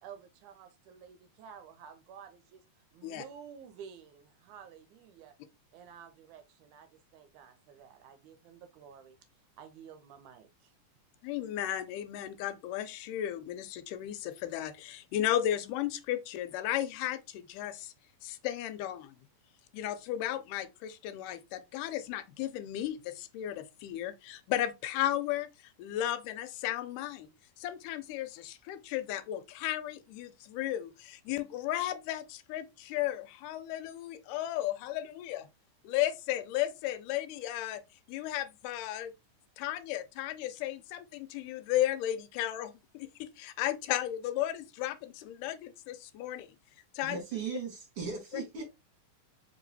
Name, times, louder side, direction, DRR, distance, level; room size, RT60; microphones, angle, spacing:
voice 1, 0.0-5.3 5.7-9.2 9.6-10.7, right 7 dB, 80° right, 1.9 m, -52 dB
voice 2, 11.2-17.9 18.2-19.1 19.7-25.5 25.8-35.5 35.8-37.8 38.1-39.1 39.6-46.6 47.0-47.2, left 13 dB, 85° left, 2.1 m, -34 dB
voice 3, 47.0-48.6, right 5 dB, 50° right, 2.0 m, -37 dB
4.6 x 2.9 x 2.7 m
omnidirectional pair, 3.7 m